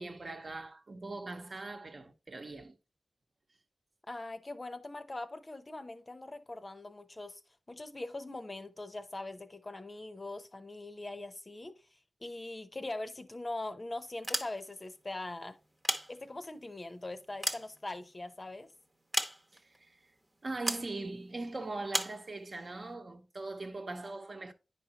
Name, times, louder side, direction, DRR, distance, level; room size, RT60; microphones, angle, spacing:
voice 1, 0.0-2.7 19.5-20.0 20.4-24.5, right 2 dB, 45° right, 1.0 m, -41 dB
voice 2, 4.1-7.4 7.7-11.8 12.2-15.6 16.1-18.7, left 2 dB, 30° left, 0.7 m, -42 dB
sound 1, 14.1-14.9 15.6-16.6 17.1-18.3 19.1-19.8 20.7-20.9 21.9-22.2, right 1 dB, 10° right, 0.9 m, -35 dB
9.7 x 5.1 x 2.9 m
wide cardioid pair, 90°, 0 cm